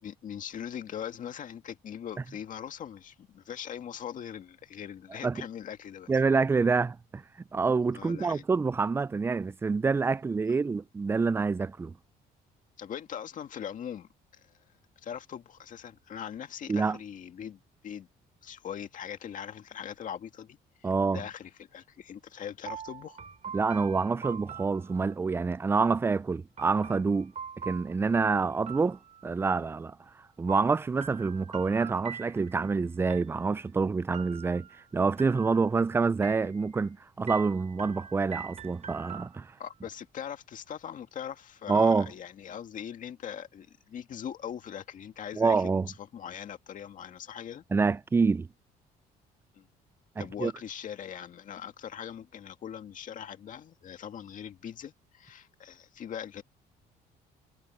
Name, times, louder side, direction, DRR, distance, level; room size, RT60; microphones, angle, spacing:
voice 1, 0.0-6.1 7.9-8.5 12.8-14.6 15.0-18.1 18.4-23.2 39.6-47.6 49.5-49.7 50.2-56.4, left 9 dB, 50° left, 2.1 m, -41 dB
voice 2, 6.1-7.2 7.5-11.9 16.7-17.0 20.8-21.2 23.5-30.0 30.4-34.7 34.9-39.5 41.7-42.1 45.4-45.9 47.7-48.5 50.2-50.5, right 4 dB, 15° right, 0.3 m, -27 dB
sound 1, 22.7-25.4 26.6-29.6 30.5-32.7 33.1-33.7 34.1-34.8 35.2-35.8 36.2-36.9 37.3-39.7, right 7 dB, 40° right, 3.2 m, -44 dB
cardioid pair, 110°, 17 cm